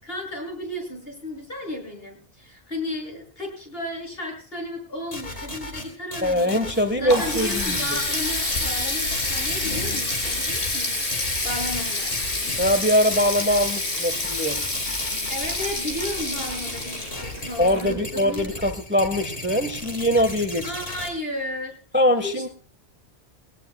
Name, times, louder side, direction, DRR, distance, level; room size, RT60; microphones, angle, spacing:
voice 1, 0.0-6.6 7.0-12.3 15.3-18.6 20.6-21.8 22.2-22.5, left 1 dB, 65° left, 0 dB, 6.8 m, -34 dB
sound 1, 5.1-21.1, left 1 dB, 45° left, 2.9 m, -36 dB
voice 2, 6.2-8.0 12.6-14.6 17.6-20.7 21.9-22.5, equal, 10° right, 9 dB, 1.2 m, -22 dB
Water tap faucet, 6.7-18.3, left 2 dB, 90° left, 3.6 m, -28 dB
21.5 x 18.0 x 2.2 m, 0.40 s
omnidirectional pair, 1.1 m